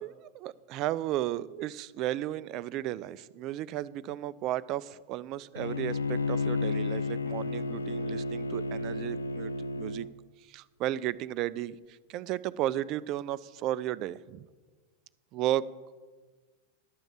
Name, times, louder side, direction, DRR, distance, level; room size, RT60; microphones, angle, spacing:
voice 1, 0.0-10.1 10.5-14.5 15.3-15.7, right 13 dB, 40° right, 19 dB, 0.4 m, -34 dB
Bowed string instrument, 5.6-10.1, left 3 dB, 75° left, 0.4 m, -32 dB
11.0 x 7.1 x 7.5 m, 1.4 s
figure-of-eight pair, 90°, 0 cm